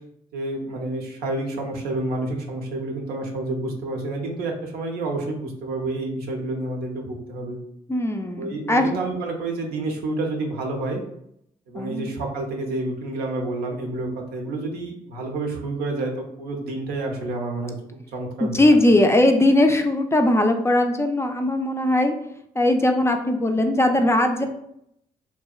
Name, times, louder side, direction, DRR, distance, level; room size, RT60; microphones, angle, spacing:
voice 1, 0.3-7.6 8.4-11.0 11.7-16.1 16.4-17.7 18.1-18.6 24.4-24.5, right 2 dB, 85° right, 1 dB, 0.5 m, -29 dB
voice 2, 7.9-8.9 11.7-12.1 18.4-22.1 22.6-24.5, left 1 dB, 15° left, 5 dB, 0.3 m, -19 dB
2.6 x 2.1 x 2.3 m, 0.74 s
supercardioid pair, 50°, 16 cm